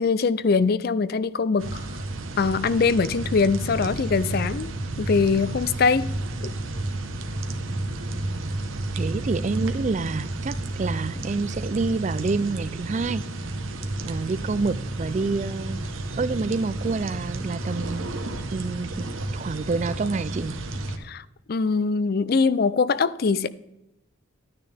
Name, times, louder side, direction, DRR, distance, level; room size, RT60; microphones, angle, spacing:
voice 1, 0.0-2.0 2.4-4.7 5.0-6.1 6.4-6.5 21.0-23.5, left 4 dB, 50° left, 0.4 m, -23 dB
sound 1, 1.6-21.0, right 2 dB, 80° right, 1.1 m, -31 dB
voice 2, 8.9-13.2 14.0-15.8 16.2-18.1 18.5-19.1 19.3-20.5, right 4 dB, 35° right, 0.3 m, -27 dB
12.0 x 9.7 x 3.4 m
head